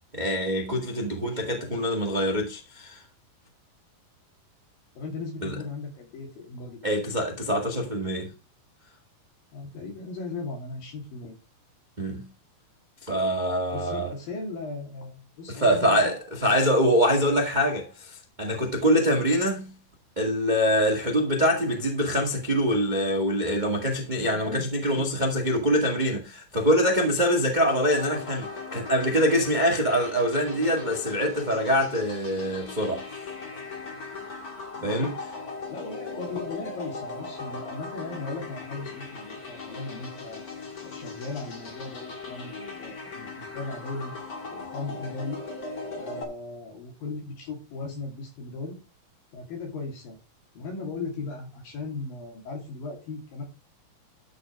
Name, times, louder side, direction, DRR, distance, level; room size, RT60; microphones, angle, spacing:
voice 1, 0.1-3.0 5.4-5.5 6.8-8.3 12.0-12.3 13.1-14.1 15.5-19.7 20.2-28.5 28.7-33.0 34.8-35.1, equal, 20° right, 1.1 m, -24 dB
voice 2, 1.2-1.7 5.0-6.8 9.5-11.3 13.7-16.1 16.6-16.8 24.2-25.1 34.8-35.1 35.7-40.4 40.8-44.1 44.5-45.4 46.0-48.7 49.3-50.2 50.5-53.4, left 3 dB, 65° left, 4.5 m, -37 dB
sound 1, 27.6-46.2, left 3 dB, 35° left, 1.5 m, -39 dB
12.5 x 5.2 x 4.7 m
omnidirectional pair, 4.3 m